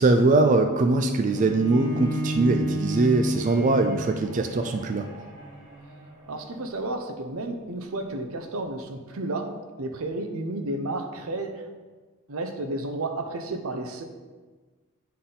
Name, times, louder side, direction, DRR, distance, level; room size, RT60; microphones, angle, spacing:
voice 1, 0.0-5.1, right 3 dB, 35° right, 6 dB, 0.4 m, -22 dB
Bowed string instrument, 1.3-6.5, equal, 20° right, 1.7 m, -33 dB
voice 2, 6.3-11.7 12.3-14.0, right 2 dB, 85° right, 5 dB, 0.7 m, -32 dB
9.5 x 4.2 x 3.8 m, 1.3 s
head